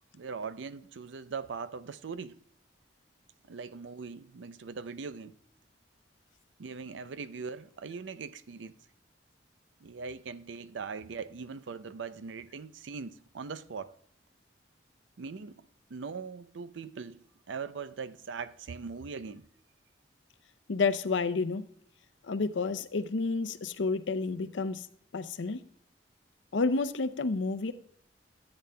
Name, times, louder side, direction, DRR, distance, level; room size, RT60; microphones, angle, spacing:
voice 1, 0.1-2.4 3.5-5.4 6.6-8.8 9.8-14.0 15.2-19.5, right 5 dB, 85° right, 0.5 m, -41 dB
voice 2, 20.7-21.6 22.3-24.8 25.1-25.6 26.5-27.7, left 4 dB, 85° left, 0.6 m, -30 dB
14.0 x 8.8 x 2.2 m
head